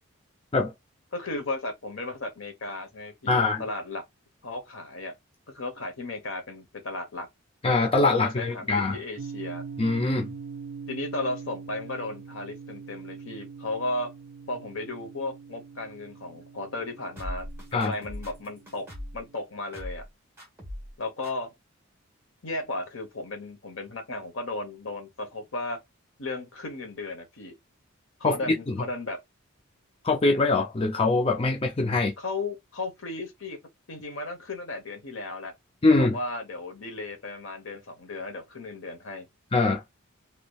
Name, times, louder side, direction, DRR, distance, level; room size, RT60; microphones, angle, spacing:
voice 1, 1.1-4.0 4.4-5.1 5.5-7.3 8.1-9.6 10.9-14.1 14.5-17.5 17.7-20.0 21.0-21.5 22.4-25.8 26.2-27.5 28.2-29.2 32.2-33.6 33.9-35.5 35.9-39.3, left 2 dB, 70° left, 1.1 m, -35 dB
voice 2, 3.3-3.6 7.6-9.0 9.8-10.3 17.7-17.9 28.2-28.8 30.0-32.1 35.8-36.1 39.5-39.8, left 3 dB, 25° left, 0.4 m, -23 dB
sound 1, 9.2-19.3, right 5 dB, 50° right, 0.4 m, -43 dB
sound 2, 17.2-19.2 19.7-20.1 20.4-20.9 21.2-21.3, left 1 dB, 10° right, 1.7 m, -39 dB
3.3 x 2.9 x 2.3 m
head